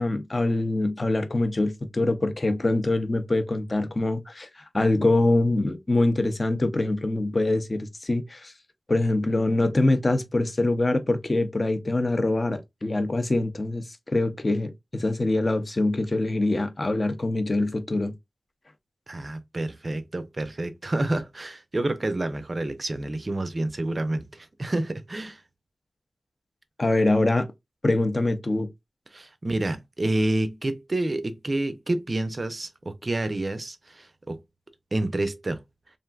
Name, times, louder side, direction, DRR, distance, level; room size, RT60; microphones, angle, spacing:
voice 1, 0.0-8.5 8.9-18.1 26.8-27.5 27.8-28.7, left 2 dB, 35° left, 0.5 m, -24 dB
voice 2, 19.1-25.4 29.1-34.4 34.9-35.6, right 2 dB, 35° right, 0.5 m, -28 dB
3.2 x 2.5 x 2.3 m
wide cardioid pair, 90°, 0 cm